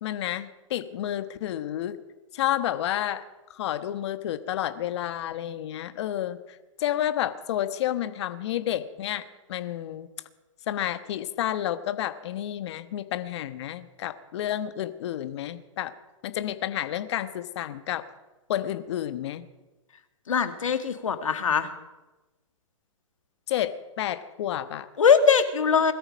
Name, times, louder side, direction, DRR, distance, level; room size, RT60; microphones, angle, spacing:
voice 1, 0.0-2.0 2.3-3.2 3.5-6.4 6.8-9.2 9.5-10.1 10.7-15.9 16.2-18.0 18.5-19.5 23.5-24.9, left 12 dB, 60° left, 11 dB, 1.3 m, -30 dB
voice 2, 20.3-21.7 25.0-25.9, left 6 dB, 80° left, 9 dB, 1.8 m, -21 dB
21.0 x 13.0 x 5.2 m, 1.1 s
hypercardioid pair, 125°, 16 cm